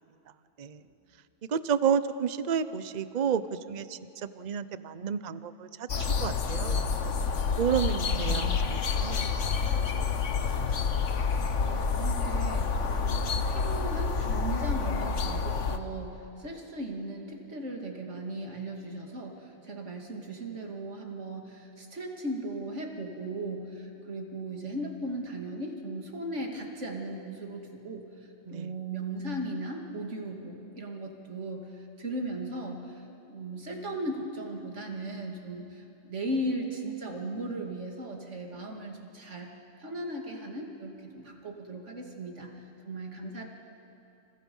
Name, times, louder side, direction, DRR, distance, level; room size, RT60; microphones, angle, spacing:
voice 1, 1.5-6.9 7.6-9.9 28.5-28.7, right 7 dB, 45° right, 13 dB, 0.7 m, -31 dB
sound 1, 5.9-15.8, left 5 dB, 80° left, 1.5 m, -28 dB
voice 2, 7.9-8.7 11.5-28.1 28.5-39.5 39.8-42.5 42.8-43.4, right 1 dB, 75° right, 1 dB, 2.8 m, -37 dB
29.5 x 28.5 x 5.5 m, 2.8 s
omnidirectional pair, 1.2 m